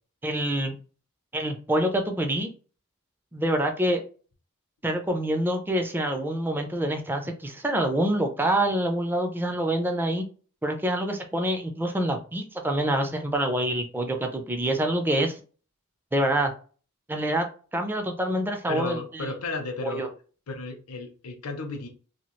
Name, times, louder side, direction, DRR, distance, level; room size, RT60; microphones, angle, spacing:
voice 1, 0.2-0.8 1.3-2.5 3.3-4.0 4.8-10.2 10.6-15.4 16.1-16.5 17.1-17.5 17.7-19.3 19.8-20.1, right 1 dB, 10° right, 4 dB, 0.4 m, -26 dB
voice 2, 18.7-20.1 20.5-21.9, left 3 dB, 75° left, 5 dB, 0.7 m, -33 dB
2.8 x 2.3 x 3.1 m, 0.39 s
head